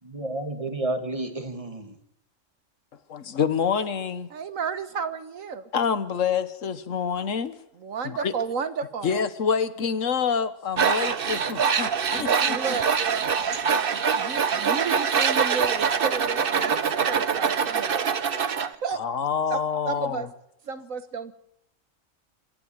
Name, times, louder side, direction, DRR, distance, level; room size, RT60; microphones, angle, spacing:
voice 1, 0.0-2.0 14.5-14.6, right 2 dB, 25° right, 7 dB, 2.0 m, -31 dB
voice 2, 3.1-4.3 5.7-7.5 8.0-8.3 9.0-12.6 19.0-20.2, left 6 dB, 75° left, 13 dB, 1.4 m, -27 dB
voice 3, 4.3-5.7 7.8-9.2 12.1-18.1 18.6-19.0 19.5-19.6 19.8-20.3 20.6-21.3, right 5 dB, 85° right, 11 dB, 1.7 m, -32 dB
Tools, 10.8-18.7, right 6 dB, 50° right, 1.1 m, -24 dB
26.0 x 12.0 x 9.1 m, 0.79 s
omnidirectional pair, 1.3 m